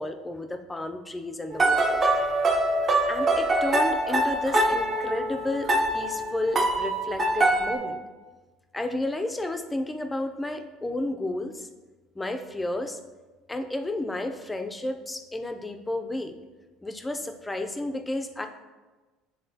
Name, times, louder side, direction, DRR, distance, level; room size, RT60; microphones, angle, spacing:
voice 1, 0.0-2.0 3.1-8.0 8.7-11.7 12.2-13.0 13.5-16.4 16.8-18.5, left 2 dB, 10° left, 6 dB, 0.5 m, -32 dB
sound 1, 1.5-7.8, right 1 dB, 30° right, 0.7 m, -24 dB
9.6 x 3.6 x 2.7 m, 1.3 s
cardioid pair, 125°, 0 cm